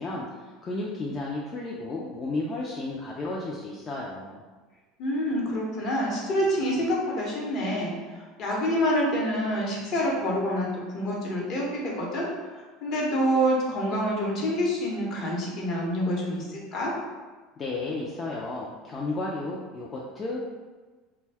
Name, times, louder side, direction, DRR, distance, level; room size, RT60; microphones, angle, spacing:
voice 1, 0.0-4.4 17.6-20.4, left 2 dB, 30° left, -4 dB, 0.4 m, -33 dB
voice 2, 5.0-16.9, equal, 50° left, -3 dB, 0.9 m, -27 dB
2.6 x 2.2 x 3.4 m, 1.3 s
supercardioid pair, 110°, 0 cm